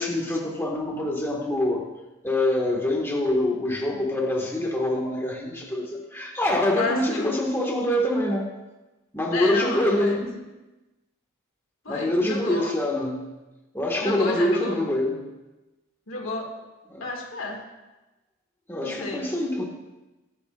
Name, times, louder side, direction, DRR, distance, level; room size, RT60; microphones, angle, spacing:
voice 1, 0.0-1.8 2.2-8.5 9.1-10.4 11.9-13.2 13.7-15.2 16.9-17.1 18.7-19.7, left 1 dB, 10° left, -2 dB, 1.8 m, -25 dB
voice 2, 6.8-7.3 9.3-10.2 11.8-12.7 14.0-14.8 16.1-16.5 17.0-17.6 18.8-19.3, left 2 dB, 85° left, 0 dB, 2.3 m, -31 dB
22.0 x 9.9 x 2.6 m, 1.1 s
head